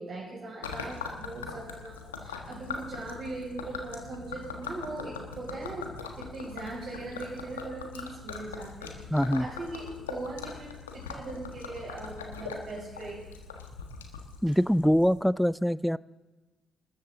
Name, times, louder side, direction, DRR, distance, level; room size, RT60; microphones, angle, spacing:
voice 1, 0.0-5.9 6.1-13.4 14.5-14.6, right 2 dB, 55° right, -4 dB, 6.5 m, -40 dB
Gurgling / Liquid, 0.6-15.2, left 5 dB, 90° left, 1.4 m, -41 dB
voice 2, 9.1-9.5 14.4-16.0, equal, ahead, 19 dB, 0.5 m, -24 dB
27.5 x 13.5 x 3.8 m, 1.2 s
hypercardioid pair, 40°, 0 cm